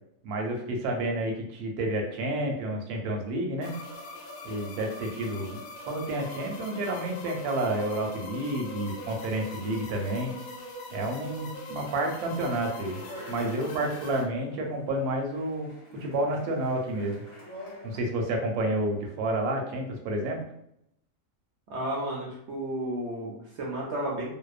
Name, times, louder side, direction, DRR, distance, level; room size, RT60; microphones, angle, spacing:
voice 1, 0.2-3.7 4.4-5.6 5.9-10.3 10.9-13.0 13.3-15.7 16.0-17.2 17.8-20.4, right 1 dB, 80° right, 1 dB, 1.1 m, -30 dB
sound 1, 3.6-14.2, left 2 dB, 70° left, 1.0 m, -42 dB
Speech, 12.4-18.2, left 1 dB, 40° left, 0.4 m, -47 dB
voice 2, 21.7-24.3, right 1 dB, 65° right, -3 dB, 0.7 m, -32 dB
2.7 x 2.0 x 2.3 m, 0.75 s
omnidirectional pair, 1.6 m